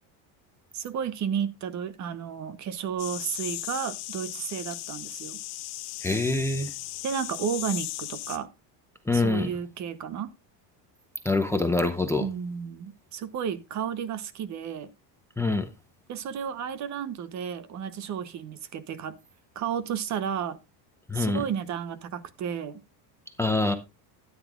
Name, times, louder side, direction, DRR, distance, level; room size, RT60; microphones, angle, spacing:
voice 1, 0.7-5.4 7.0-8.5 9.1-10.3 12.2-14.9 16.1-19.2 19.5-20.6 21.1-22.8, right 8 dB, 35° right, 0.9 m, -32 dB
sound 1, 3.0-8.4, left 17 dB, 60° left, 1.7 m, -37 dB
voice 2, 6.0-6.7 9.1-9.5 11.2-12.3 15.4-15.7 21.1-21.4 23.4-23.8, left 2 dB, 5° left, 0.6 m, -25 dB
13.0 x 9.8 x 2.4 m
cardioid pair, 155°, 48 cm